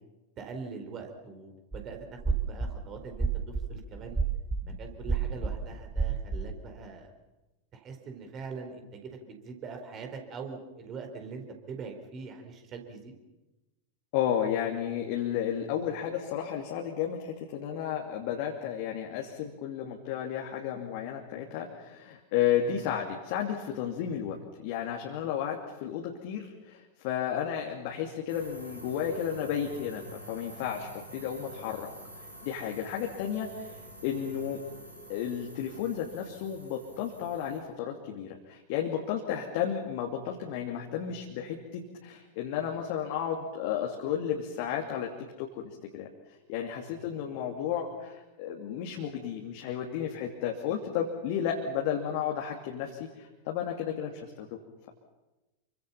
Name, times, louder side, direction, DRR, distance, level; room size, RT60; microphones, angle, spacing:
voice 1, 0.4-4.2 4.8-7.1 7.7-13.2 47.0-47.2 50.1-50.2, right 5 dB, 30° right, 5 dB, 4.3 m, -43 dB
sound 1, 1.7-1.8 2.2-2.7 3.1-6.7, right 4 dB, 5° right, 3.1 m, -30 dB
voice 2, 14.1-24.4 24.6-31.9 32.4-33.8 34.0-34.6 35.1-45.1 45.4-46.1 46.5-54.5, left 9 dB, 45° left, 0 dB, 2.8 m, -33 dB
sound 2, 28.3-37.6, right 1 dB, 85° right, 6.9 m, -48 dB
28.5 x 24.5 x 5.8 m, 1.1 s
figure-of-eight pair, 90°, 0 cm